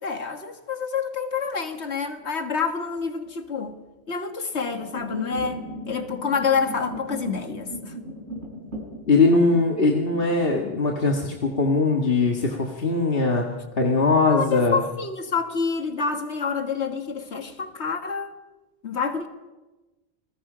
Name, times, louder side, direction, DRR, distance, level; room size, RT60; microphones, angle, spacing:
voice 1, 0.0-3.7 4.1-5.6 5.9-8.0 14.3-18.3 18.8-19.3, left 5 dB, 75° left, 6 dB, 2.0 m, -27 dB
sound 1, 1.4-2.5 3.1-3.5 4.3-15.3 15.7-16.2 16.5-16.6 17.0-17.7, equal, 80° right, 5.7 m, -39 dB
voice 2, 9.1-13.5 13.8-14.8, left 3 dB, 55° left, 1 dB, 1.9 m, -21 dB
28.5 x 20.5 x 5.1 m, 1.1 s
omnidirectional pair, 1.1 m